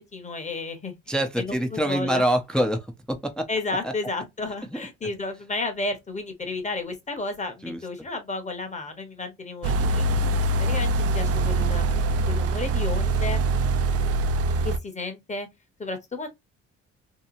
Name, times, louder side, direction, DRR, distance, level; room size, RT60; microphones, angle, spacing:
voice 1, 0.0-1.0 1.4-2.2 3.5-10.1 10.6-13.5 14.6-15.5 15.8-16.3, left 3 dB, 25° left, 1.0 m, -32 dB
voice 2, 1.1-3.5 3.8-3.9 7.6-7.8, equal, 5° left, 0.5 m, -25 dB
sound 1, 9.6-14.8, right 2 dB, 55° right, 0.4 m, -23 dB
2.8 x 2.2 x 2.6 m
cardioid pair, 90°, 30 cm